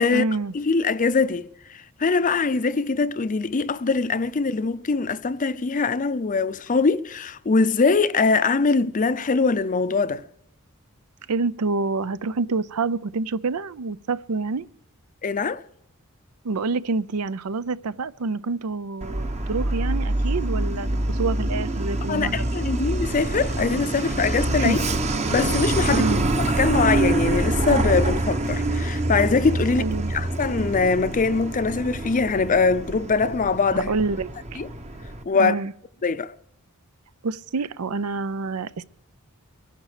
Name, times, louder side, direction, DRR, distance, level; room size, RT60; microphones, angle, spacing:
voice 1, 0.0-0.5 11.3-14.7 16.4-22.5 23.8-23.9 24.6-24.8 25.9-26.3 29.8-30.1 33.9-34.6 35.4-35.7 37.2-38.8, right 3 dB, 80° right, 0.6 m, -27 dB
voice 2, 0.5-10.2 15.2-15.6 22.1-24.8 25.3-33.9 34.6-34.7 35.3-35.5 36.0-36.3, left 4 dB, 35° left, 0.5 m, -22 dB
Truck, 19.0-35.2, right 2 dB, 30° right, 1.0 m, -26 dB
23.0 x 11.0 x 5.0 m
head